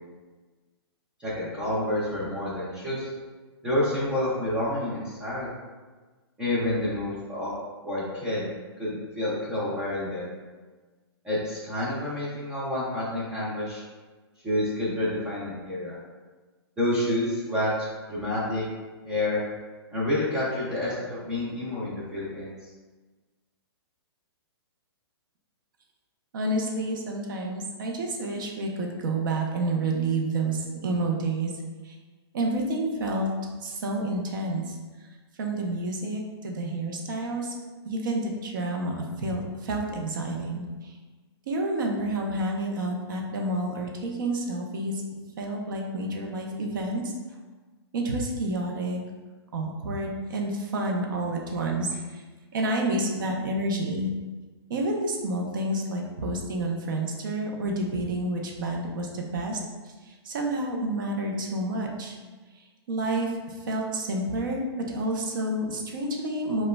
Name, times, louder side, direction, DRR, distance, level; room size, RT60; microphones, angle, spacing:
voice 1, 1.2-3.1 3.6-5.5 6.4-7.5 7.8-8.5 8.8-10.3 11.2-13.8 14.4-16.0 16.8-18.6 19.0-19.4 19.9-22.5, left 1 dB, 5° right, -8 dB, 0.3 m, -28 dB
voice 2, 26.3-31.5 32.3-33.3 33.6-34.8 35.4-37.5 37.9-40.6 41.5-45.0 45.4-47.0 47.9-49.0 49.5-52.0 52.5-54.1 54.7-59.6 60.3-62.2 62.9-63.3 63.7-64.6 64.9-66.7, right 2 dB, 50° right, 0 dB, 0.6 m, -29 dB
5.0 x 2.2 x 2.2 m, 1.3 s
hypercardioid pair, 165°, 14 cm